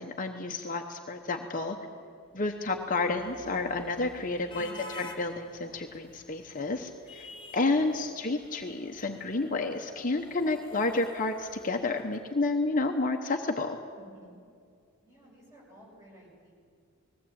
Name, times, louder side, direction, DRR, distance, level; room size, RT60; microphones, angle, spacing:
voice 1, 0.0-1.8 2.3-4.7 5.2-13.8, left 3 dB, 35° left, 3 dB, 0.9 m, -30 dB
voice 2, 1.8-2.1 4.5-5.1 7.5-8.0 10.5-10.9 13.9-14.4 15.0-16.5, right 1 dB, 15° right, -4 dB, 6.5 m, -54 dB
sound 1, 2.4-12.7, left 2 dB, 20° left, 1.6 m, -50 dB
20.0 x 16.0 x 8.7 m, 2.3 s
head